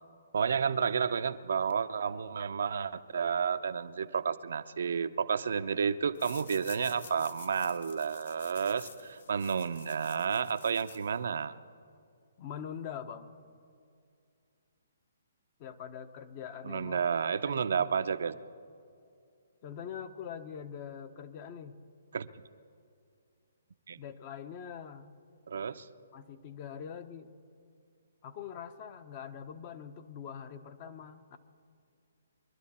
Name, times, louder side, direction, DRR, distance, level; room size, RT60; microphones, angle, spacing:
voice 1, 0.3-11.6 16.6-18.4 22.1-22.3 23.9-24.0 25.5-25.9, right 6 dB, 70° right, 11 dB, 0.5 m, -31 dB
sound 1, 6.1-11.5, left 4 dB, 70° left, 1.6 m, -51 dB
voice 2, 12.4-13.3 15.6-17.1 17.4-17.8 19.6-21.8 24.0-25.1 26.1-27.3 28.2-31.4, left 8 dB, 35° left, 10 dB, 0.8 m, -43 dB
22.5 x 12.0 x 4.3 m, 2.4 s
hypercardioid pair, 140°, 0 cm